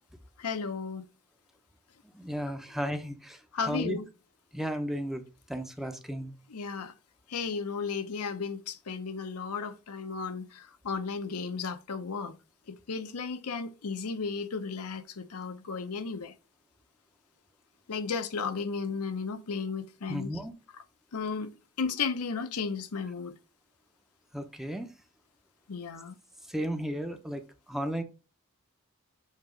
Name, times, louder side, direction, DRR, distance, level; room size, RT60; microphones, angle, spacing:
voice 1, 0.4-1.0 3.5-4.1 6.5-6.9 7.3-12.4 12.7-16.3 17.9-20.3 21.1-23.4 25.7-26.2, left 5 dB, 80° left, 0.7 m, -34 dB
voice 2, 2.1-4.0 4.5-5.2 5.5-6.3 20.1-20.5 24.3-24.9 26.5-27.4 27.7-28.0, equal, ahead, 0.6 m, -34 dB
7.4 x 2.9 x 5.0 m
head